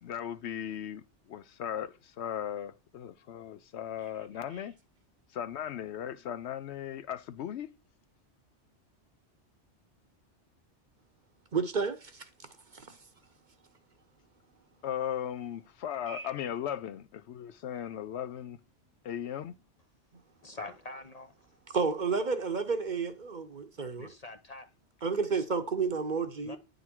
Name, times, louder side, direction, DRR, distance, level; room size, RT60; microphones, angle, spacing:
voice 1, 0.0-1.0 1.3-4.7 5.3-7.7 14.8-18.6 19.0-19.5, left 10 dB, 70° left, 0.8 m, -37 dB
voice 2, 11.5-12.3 12.7-13.0 16.1-16.3 21.7-24.1 25.0-26.6, right 5 dB, 45° right, 0.9 m, -31 dB
voice 3, 20.4-21.6 24.0-24.7 26.4-26.6, left 2 dB, 40° left, 0.6 m, -44 dB
9.5 x 4.0 x 4.4 m
omnidirectional pair, 1.2 m